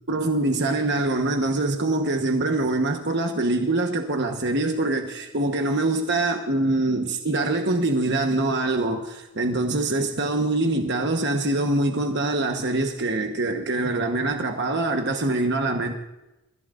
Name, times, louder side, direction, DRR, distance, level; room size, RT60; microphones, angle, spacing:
voice 1, 0.1-15.9, right 2 dB, 50° right, 1.2 m, -24 dB
28.5 x 15.0 x 2.6 m
head